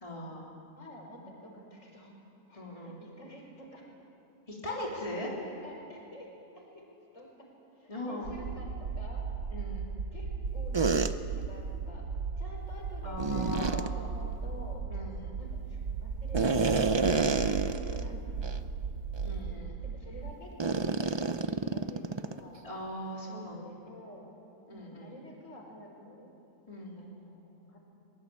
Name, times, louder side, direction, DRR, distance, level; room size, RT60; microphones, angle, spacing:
voice 1, 0.0-0.5 2.5-3.0 4.5-5.3 7.9-8.3 9.5-9.9 13.0-13.9 14.9-15.4 17.1-17.5 19.2-19.8 22.6-23.6 24.7-25.1 26.7-27.0, left 1 dB, 25° left, -3 dB, 3.7 m, -40 dB
voice 2, 0.8-3.9 4.9-6.9 7.1-9.3 10.1-12.1 12.4-14.9 15.4-16.9 17.4-18.7 19.8-22.6 23.2-24.3 24.7-26.3 27.0-27.8, equal, 75° left, 0 dB, 5.4 m, -50 dB
sound 1, 8.2-20.3, right 5 dB, 65° right, 1.3 m, -36 dB
sound 2, 10.7-11.1 13.2-13.9 16.3-18.1 18.4-18.6 19.2-19.3 20.6-22.4, right 4 dB, 30° right, 0.6 m, -28 dB
23.0 x 22.0 x 8.5 m, 2.9 s
omnidirectional pair, 1.3 m